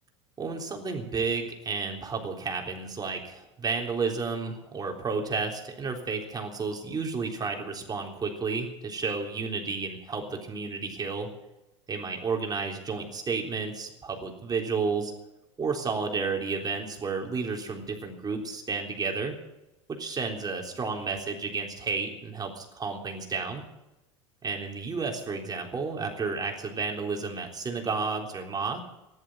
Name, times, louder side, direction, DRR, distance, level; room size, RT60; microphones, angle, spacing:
voice 1, 0.4-11.3 11.9-15.1 15.6-19.4 19.9-23.6 24.4-28.8, right 4 dB, 25° right, 2 dB, 3.7 m, -31 dB
14.0 x 11.5 x 7.9 m, 0.96 s
hypercardioid pair, 90°, 15 cm